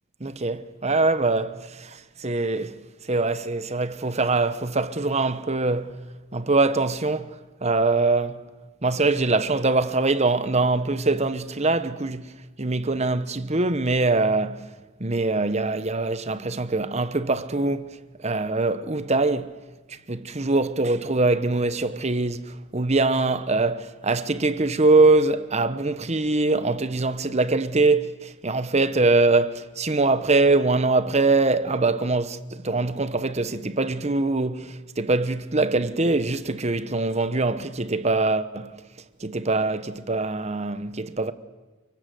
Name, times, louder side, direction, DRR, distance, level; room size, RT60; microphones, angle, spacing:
voice 1, 0.2-2.8 3.1-5.9 6.3-7.3 7.6-8.4 8.8-12.3 12.6-14.7 15.0-17.9 18.2-19.5 19.9-38.8 39.2-41.3, right 3 dB, 30° right, 1.1 m, -23 dB
29.0 x 24.5 x 7.9 m
head